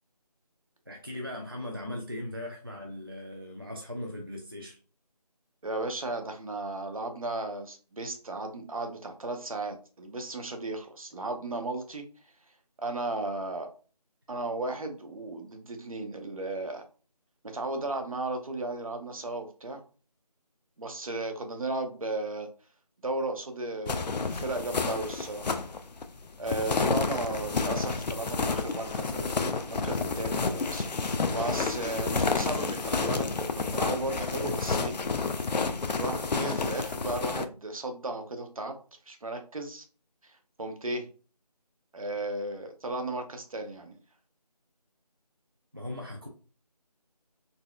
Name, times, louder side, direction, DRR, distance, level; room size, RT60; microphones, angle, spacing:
voice 1, 0.9-4.8 45.7-46.3, left 1 dB, 35° right, 1 dB, 0.3 m, -38 dB
voice 2, 5.6-12.0 12.8-13.7 14.3-16.8 17.4-19.8 20.8-22.5 23.0-25.6 26.4-35.0 35.4-35.5 35.9-38.7 39.1-39.8 40.2-41.1 41.9-44.0, right 2 dB, 55° right, 5 dB, 0.7 m, -35 dB
sound 1, 23.9-37.5, left 4 dB, 85° left, 0.5 m, -30 dB
4.0 x 2.3 x 2.3 m, 0.37 s
figure-of-eight pair, 175°, 21 cm